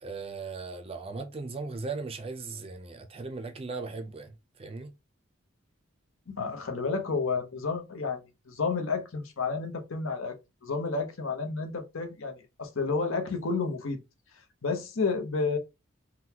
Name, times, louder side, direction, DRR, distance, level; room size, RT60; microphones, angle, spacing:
voice 1, 0.0-4.9, right 4 dB, 30° right, 0.5 m, -38 dB
voice 2, 6.3-14.0 14.6-15.6, left 4 dB, 80° left, 0.8 m, -31 dB
3.9 x 2.2 x 2.8 m
head